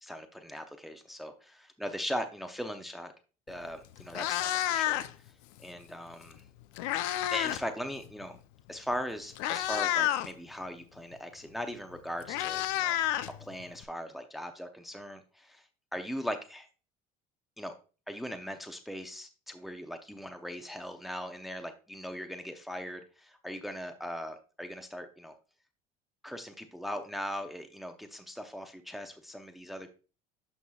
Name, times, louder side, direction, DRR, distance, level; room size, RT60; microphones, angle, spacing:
voice 1, 0.0-3.1 3.5-5.3 5.6-6.4 7.3-8.4 8.7-13.0 13.4-16.7 17.6-17.7 18.1-25.3 26.2-29.9, equal, ahead, 7 dB, 0.6 m, -39 dB
Meow, 3.5-3.6 4.0-5.3 6.3-7.7 7.9-8.2 8.9-9.0 9.3-10.3 11.6-11.7 11.9-13.8, left 13 dB, 90° left, 0.5 m, -30 dB
11.0 x 5.5 x 2.3 m, 0.34 s
cardioid pair, 130°, 16 cm